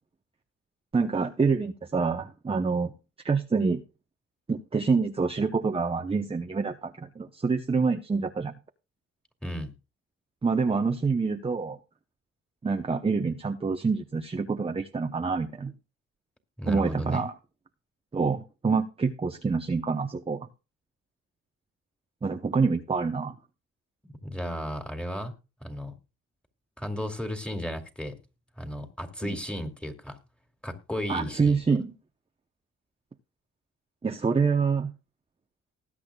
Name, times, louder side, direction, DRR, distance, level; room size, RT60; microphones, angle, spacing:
voice 1, 0.9-2.9 3.2-3.8 4.5-8.5 10.4-11.8 12.6-15.7 16.7-17.3 18.1-20.4 22.2-23.4 31.1-31.9 34.0-34.9, right 4 dB, 20° right, 0.8 m, -26 dB
voice 2, 9.4-9.8 16.6-17.2 24.0-25.3 25.6-26.0 26.8-28.2 28.6-30.2 30.6-31.6, equal, 5° left, 2.4 m, -34 dB
20.0 x 8.4 x 2.4 m
cardioid pair, 90°, 30 cm